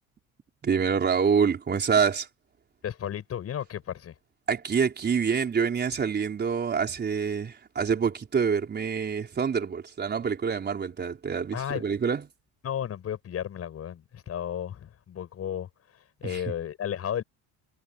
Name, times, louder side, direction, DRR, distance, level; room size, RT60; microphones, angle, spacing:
voice 1, 0.6-2.3 4.5-12.2 16.2-16.4, right 6 dB, 25° right, 4.6 m, -26 dB
voice 2, 2.8-4.1 11.5-11.8 12.6-15.7 16.2-17.2, left 9 dB, 40° left, 7.2 m, -33 dB
cardioid pair, 140°, 37 cm